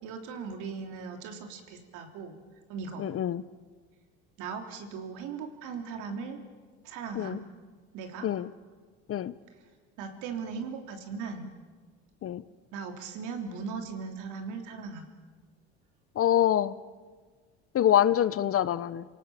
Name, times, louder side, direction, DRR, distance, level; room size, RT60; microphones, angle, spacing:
voice 1, 0.0-2.4 2.7-3.0 4.4-6.4 6.8-7.4 7.9-8.3 10.0-11.5 12.7-15.1, right 5 dB, 70° right, 4 dB, 3.3 m, -38 dB
voice 2, 3.0-3.4 7.2-7.4 8.2-8.5 9.1-9.3 12.2-12.4 16.2-16.8 17.7-19.0, left 10 dB, 45° left, 16 dB, 1.0 m, -25 dB
28.0 x 18.0 x 7.2 m, 1.5 s
hypercardioid pair, 75°, 31 cm